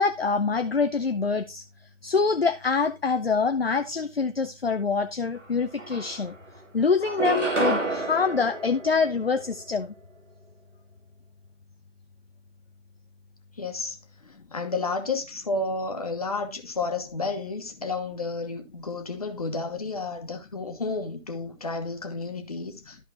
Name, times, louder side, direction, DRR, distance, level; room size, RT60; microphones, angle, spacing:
voice 1, 0.0-1.6 2.0-6.3 6.7-9.9, left 5 dB, 50° left, 0.6 m, -25 dB
sound 1, 5.4-5.5 5.8-6.6 7.0-9.6, right 2 dB, 70° right, 3.0 m, -29 dB
voice 2, 13.6-14.0 14.5-23.0, left 3 dB, 30° left, 1.3 m, -31 dB
13.5 x 4.9 x 2.7 m
figure-of-eight pair, 160°, 38 cm